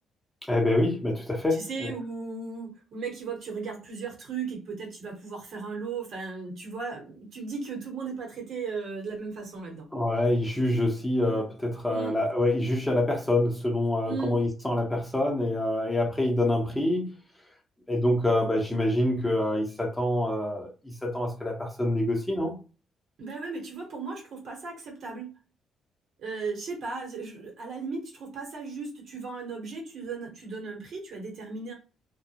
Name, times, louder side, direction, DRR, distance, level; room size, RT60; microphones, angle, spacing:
voice 1, 0.5-1.9 9.9-17.1 17.9-22.6, left 1 dB, 10° left, 0.8 m, -26 dB
voice 2, 1.7-9.9 11.9-12.2 14.1-14.3 23.2-25.3 26.2-31.7, right 4 dB, 65° right, 1.1 m, -36 dB
2.2 x 2.0 x 2.8 m
cardioid pair, 90°, 0 cm